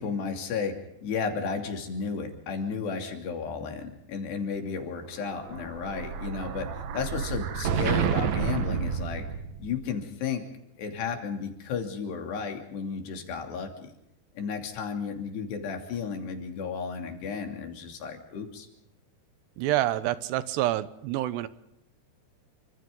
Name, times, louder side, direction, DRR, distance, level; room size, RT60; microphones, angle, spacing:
voice 1, 0.0-9.3 9.6-10.5 10.8-13.9 14.4-18.7, left 5 dB, 80° left, 3 dB, 5.1 m, -33 dB
Explosion, 5.2-9.9, right 7 dB, 60° right, 2.0 m, -30 dB
voice 2, 19.6-21.5, right 14 dB, 85° right, 14 dB, 3.1 m, -27 dB
29.0 x 26.0 x 3.9 m, 0.82 s
omnidirectional pair, 4.7 m